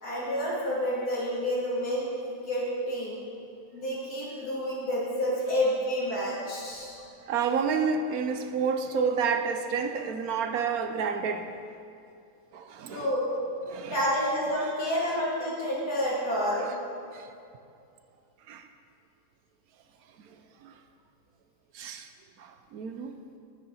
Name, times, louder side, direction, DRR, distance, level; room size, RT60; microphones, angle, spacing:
voice 1, 0.0-3.2 3.7-7.0 8.5-8.7 9.0-9.1 12.9-13.3 13.9-16.7, equal, 75° left, -6 dB, 3.1 m, -29 dB
voice 2, 7.3-11.5 12.5-13.1 13.7-14.0 16.5-16.6 17.1-17.3 18.5-18.7 20.3-20.7 21.7-22.1 22.4-23.1, right 6 dB, 70° right, 7 dB, 1.1 m, -30 dB
9.6 x 9.5 x 5.5 m, 2.5 s
omnidirectional pair, 1.6 m